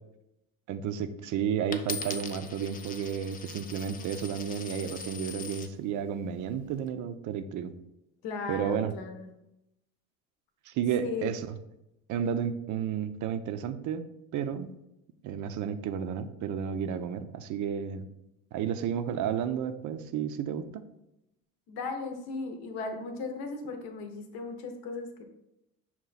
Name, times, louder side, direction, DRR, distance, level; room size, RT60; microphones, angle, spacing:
voice 1, 0.7-7.7 8.5-8.9 10.7-11.5 12.1-14.1 14.3-14.7 15.2-18.0 18.5-20.8, right 8 dB, 50° right, 10 dB, 0.5 m, -32 dB
Coin (dropping), 1.7-5.7 6.4-6.9, left 5 dB, 25° left, 0.4 m, -41 dB
voice 2, 8.2-9.3 11.0-11.3 21.7-25.3, left 4 dB, 70° left, 5 dB, 0.8 m, -37 dB
5.7 x 2.3 x 3.9 m, 0.88 s
supercardioid pair, 80°, 39 cm